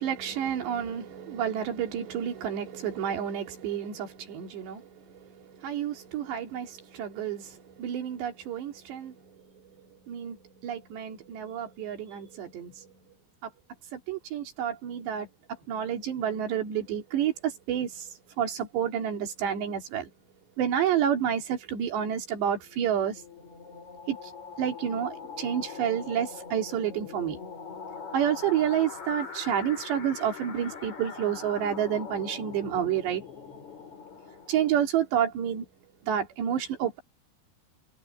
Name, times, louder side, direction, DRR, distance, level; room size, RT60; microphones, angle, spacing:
voice 1, 0.0-12.9 13.4-13.5 13.9-15.3 15.7-20.1 20.6-23.2 24.1-24.3 24.6-27.4 28.1-33.2 34.5-35.7 36.0-37.0, right 9 dB, 80° right, 5.0 m, -30 dB
sound 1, 22.6-35.0, left 5 dB, 45° left, 5.9 m, -42 dB
omnidirectional pair, 4.9 m